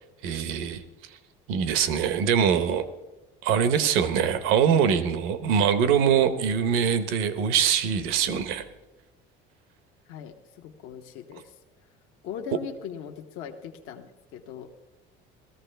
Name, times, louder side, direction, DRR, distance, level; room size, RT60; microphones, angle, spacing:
voice 1, 0.2-0.8 1.5-2.8 3.4-8.6, right 7 dB, 75° right, 11 dB, 1.0 m, -23 dB
voice 2, 10.1-11.5 12.2-14.7, left 8 dB, 75° left, 2 dB, 1.0 m, -40 dB
17.5 x 13.5 x 3.4 m, 1.0 s
cardioid pair, 115°, 21 cm